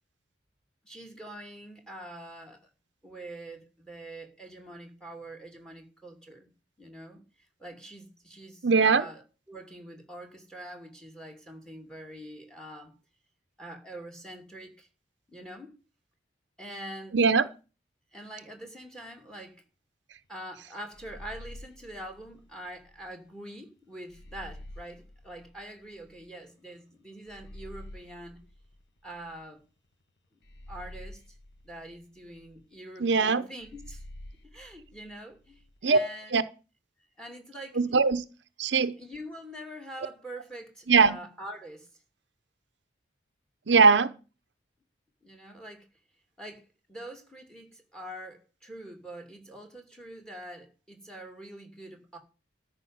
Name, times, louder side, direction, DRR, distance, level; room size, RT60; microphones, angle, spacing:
voice 1, 0.8-2.7 3.0-6.5 6.8-7.2 7.6-12.9 13.6-14.9 15.3-15.7 16.6-17.2 18.1-19.6 20.3-28.4 29.0-29.6 30.3-30.4 30.7-31.4 31.6-34.0 34.4-36.3 37.2-37.8 39.0-42.0 45.2-45.9 46.4-52.2, right 1 dB, 5° left, 2.7 m, -44 dB
voice 2, 8.6-9.0 17.1-17.4 33.0-33.5 35.8-36.0 36.3-36.4 37.8-38.2 38.6-39.0 40.9-41.2 43.7-44.1, right 5 dB, 70° right, 0.8 m, -21 dB
sound 1, 20.9-23.1 24.1-26.3 27.3-29.6 30.4-32.6 33.6-35.8, left 1 dB, 65° left, 1.3 m, -48 dB
13.5 x 5.4 x 9.3 m
head